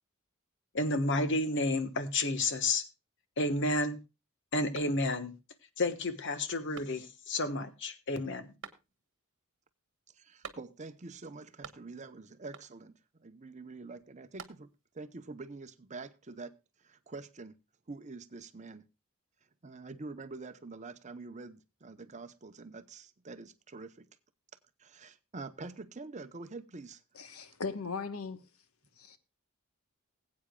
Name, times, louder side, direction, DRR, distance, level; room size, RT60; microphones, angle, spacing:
voice 1, 0.7-2.8 3.4-4.0 4.5-5.3 5.8-8.5, left 2 dB, 55° left, 1.2 m, -31 dB
sound 1, 4.7-5.4 5.8-5.9 6.7-7.4 8.6-9.2 10.4-11.0 11.3-12.1 12.5-13.0 14.0-15.0, right 6 dB, 60° right, 1.3 m, -50 dB
voice 2, 10.1-12.9 13.2-14.7 14.9-17.6 17.9-18.8 19.6-24.1 24.8-27.0, right 3 dB, 35° right, 0.7 m, -46 dB
voice 3, 27.1-28.5 29.0-29.2, left 4 dB, 75° left, 1.2 m, -38 dB
20.0 x 8.6 x 2.2 m
head